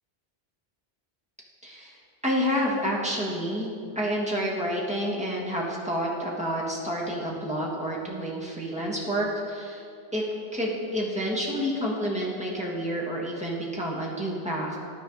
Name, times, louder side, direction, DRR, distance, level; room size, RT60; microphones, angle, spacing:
voice 1, 1.6-1.9 2.2-3.7 3.9-9.8 10.1-10.2 10.5-14.8, equal, 5° right, -5 dB, 1.3 m, -29 dB
12.5 x 4.6 x 3.8 m, 2.4 s
omnidirectional pair, 1.1 m